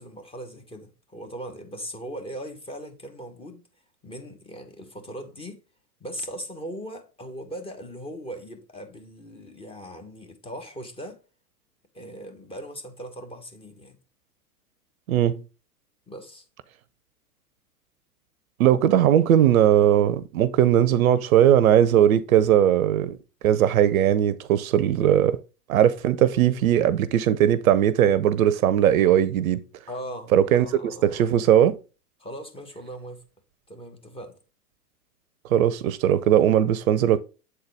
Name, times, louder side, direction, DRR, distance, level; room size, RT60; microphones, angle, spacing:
voice 1, 0.0-3.6 4.0-5.6 6.0-11.2 11.9-14.0 16.1-16.4 29.9-31.3 32.2-33.2 33.7-34.4, equal, 10° left, 1.1 m, -39 dB
voice 2, 15.1-15.4 18.6-23.2 23.4-25.4 25.7-29.6 30.3-30.7 31.0-31.8 35.5-37.2, right 10 dB, 60° right, 0.6 m, -19 dB
7.8 x 4.0 x 3.3 m
hypercardioid pair, 105°, 47 cm